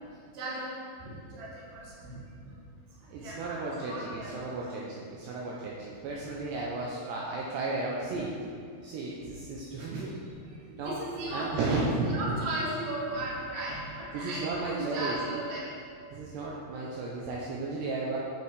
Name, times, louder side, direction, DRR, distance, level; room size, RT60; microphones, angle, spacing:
voice 1, 0.3-0.7 1.0-2.2 3.2-4.5 8.1-8.2 9.9-10.0 10.7-11.5 11.7-15.6, right 2 dB, 45° right, -6 dB, 2.8 m, -36 dB
voice 2, 3.1-8.3 8.8-10.1 10.8-11.0 11.3-12.4 14.1-15.2 16.1-18.2, right 3 dB, 75° right, -4 dB, 2.8 m, -34 dB
8.8 x 7.8 x 4.8 m, 2.3 s
omnidirectional pair, 5.3 m